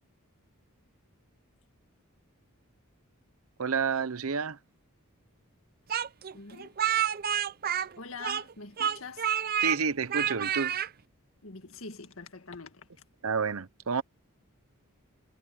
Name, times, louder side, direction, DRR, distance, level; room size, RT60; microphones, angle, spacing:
voice 1, 3.6-4.6 9.6-10.8 13.2-14.0, right 5 dB, 75° right, 0.8 m, -29 dB
Speech, 5.9-8.5 8.8-9.8 10.1-10.9, right 9 dB, 40° right, 0.5 m, -29 dB
voice 2, 6.3-6.8 8.0-9.3 11.4-12.9, left 4 dB, 65° left, 1.9 m, -44 dB
head